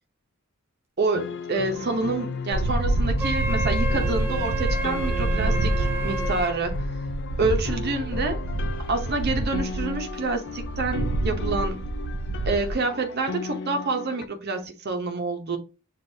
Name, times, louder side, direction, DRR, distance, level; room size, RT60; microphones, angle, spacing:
voice 1, 1.0-6.7 7.4-8.4 8.9-11.8 12.5-15.6, right 3 dB, 50° right, 0.8 m, -27 dB
sound 1, 1.1-14.3, left 5 dB, 55° left, 0.4 m, -35 dB
sound 2, 2.5-12.7, right 2 dB, 85° right, 0.5 m, -27 dB
Wind instrument woodwind instrument, 3.2-6.6, right 2 dB, 10° right, 0.4 m, -31 dB
7.1 x 2.5 x 2.7 m
head